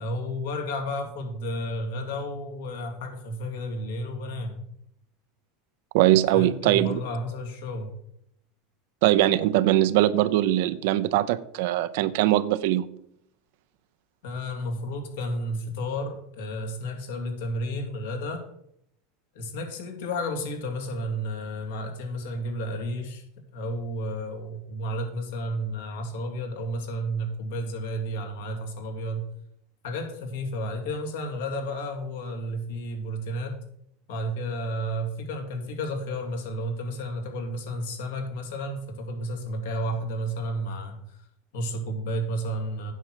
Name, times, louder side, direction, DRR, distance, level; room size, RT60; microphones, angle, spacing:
voice 1, 0.0-4.6 6.3-7.9 14.2-18.4 19.3-23.2 23.5-29.3 29.8-33.6 34.1-41.3 41.5-42.9, equal, 80° left, 3 dB, 2.7 m, -32 dB
voice 2, 5.9-7.0 9.0-12.9, right 14 dB, 70° right, 15 dB, 0.7 m, -21 dB
9.3 x 4.9 x 7.6 m, 0.73 s
supercardioid pair, 105°, 0 cm